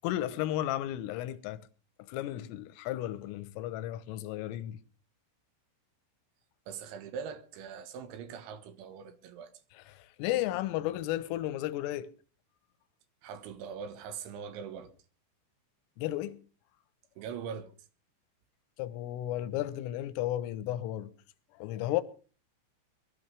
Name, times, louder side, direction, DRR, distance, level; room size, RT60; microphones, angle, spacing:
voice 1, 0.0-1.6 2.1-4.8 9.8-12.1 16.0-16.4 18.8-21.1 21.6-22.0, left 14 dB, 85° left, 3.5 m, -33 dB
voice 2, 6.7-9.5 13.2-14.9 17.2-17.7, right 7 dB, 75° right, 3.4 m, -42 dB
22.5 x 13.0 x 3.4 m
omnidirectional pair, 6.0 m